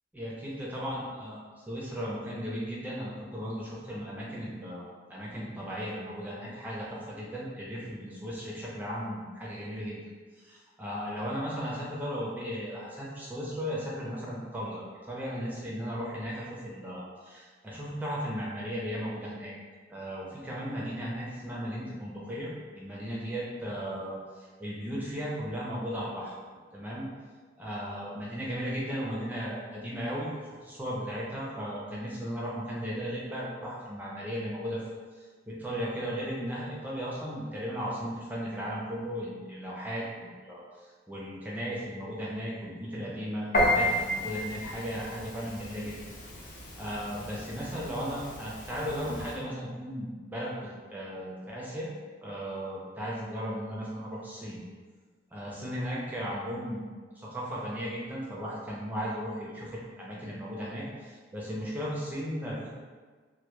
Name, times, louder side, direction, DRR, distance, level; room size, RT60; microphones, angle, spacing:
voice 1, 0.1-4.8 5.1-10.0 10.4-19.5 19.9-26.3 26.7-27.1 27.6-30.3 30.6-34.8 35.5-40.6 41.1-46.0 46.8-51.9 52.2-54.6 55.3-56.9 57.2-62.7, equal, 10° right, -6 dB, 0.4 m, -36 dB
Piano, 43.5-49.4, left 1 dB, 45° left, 0.5 m, -32 dB
2.1 x 2.1 x 2.9 m, 1.5 s
head